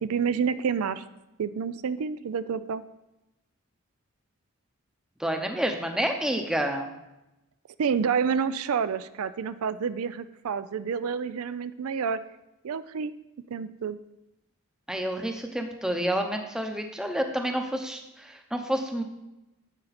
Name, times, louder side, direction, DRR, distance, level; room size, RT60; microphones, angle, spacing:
voice 1, 0.0-1.0 1.4-2.8 7.8-12.2 12.6-13.1 13.5-14.0, right 6 dB, 80° right, 14 dB, 0.4 m, -28 dB
voice 2, 5.2-6.9 14.9-19.0, right 1 dB, 5° right, 4 dB, 0.7 m, -29 dB
9.8 x 7.8 x 4.2 m, 0.95 s
head